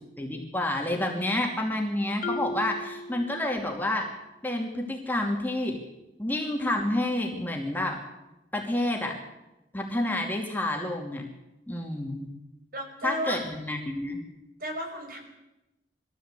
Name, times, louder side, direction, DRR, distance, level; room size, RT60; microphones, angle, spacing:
voice 1, 0.2-4.1 4.4-5.8 6.2-8.0 8.5-9.1 9.7-11.2 11.7-12.3 13.0-14.2, left 1 dB, 10° left, 0 dB, 2.7 m, -29 dB
Marimba xylophone, 2.2-4.0, left 2 dB, 50° left, 1.2 m, -36 dB
voice 2, 12.7-13.4 14.6-15.2, right 1 dB, 55° right, 2 dB, 5.4 m, -33 dB
21.5 x 14.5 x 8.3 m, 0.97 s
head